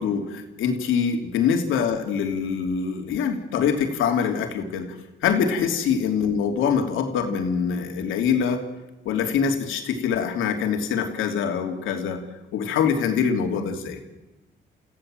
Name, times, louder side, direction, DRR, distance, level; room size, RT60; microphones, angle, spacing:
voice 1, 0.0-4.9 5.2-8.6 9.0-12.2 12.5-14.0, left 7 dB, 85° left, 4 dB, 2.9 m, -24 dB
29.5 x 15.5 x 7.6 m, 1.1 s
cardioid pair, 90°, 20 cm